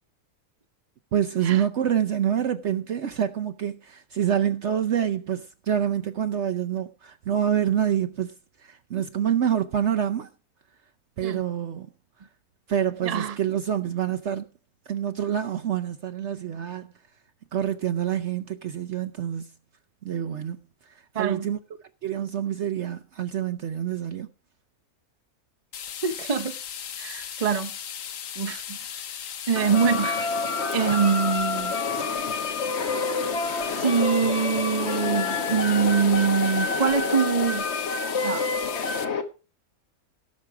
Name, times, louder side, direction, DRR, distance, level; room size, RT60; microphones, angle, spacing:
voice 1, 1.1-8.3 8.6-10.3 11.2-11.9 12.7-14.5 14.9-16.9 17.5-19.5 20.0-20.6 21.1-21.6 22.0-24.3, right 9 dB, 60° right, 0.9 m, -26 dB
voice 2, 13.0-13.4 21.1-21.5 26.0-26.6 27.0-27.7 28.4-28.8 29.5-30.4 30.7-31.7 33.7-37.7 38.2-38.4, right 6 dB, 30° right, 0.8 m, -24 dB
sound 1, 25.7-39.0, left 9 dB, 65° left, 1.2 m, -37 dB
sound 2, 29.6-39.2, left 4 dB, 50° left, 1.5 m, -28 dB
17.0 x 6.4 x 4.8 m
omnidirectional pair, 1.6 m